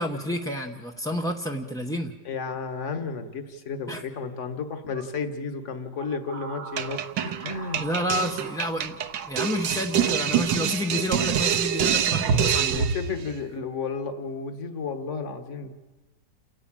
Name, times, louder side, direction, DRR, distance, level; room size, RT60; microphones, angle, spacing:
voice 1, 0.0-2.1 3.9-4.0 7.8-9.0 9.3-12.8, left 1 dB, 5° left, 1 dB, 0.5 m, -29 dB
voice 2, 2.2-7.8 12.7-15.7, left 5 dB, 45° left, 7 dB, 1.7 m, -32 dB
sound 1, 2.5-2.6 2.9-3.1 4.9-5.1 6.0-10.3 11.5-11.6 12.0-13.1, right 4 dB, 65° right, 1.4 m, -33 dB
sound 2, 6.8-13.1, right 9 dB, 80° right, 1.6 m, -26 dB
29.0 x 11.0 x 8.9 m, 1.2 s
omnidirectional pair, 1.9 m